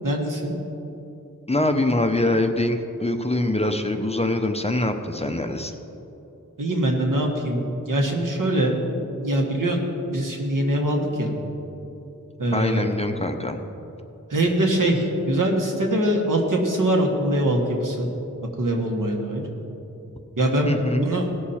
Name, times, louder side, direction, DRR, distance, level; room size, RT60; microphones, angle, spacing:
voice 1, 0.0-0.5 6.6-7.6 7.9-8.7 9.2-9.8 10.1-11.3 12.4-12.9 14.3-18.1 18.6-19.4 20.4-21.3, right 1 dB, 80° right, 1 dB, 1.5 m, -23 dB
voice 2, 1.5-5.7 12.5-13.6 20.7-21.1, left 1 dB, 20° left, 6 dB, 0.7 m, -24 dB
17.5 x 6.6 x 4.3 m, 3.0 s
wide cardioid pair, 65°, 32 cm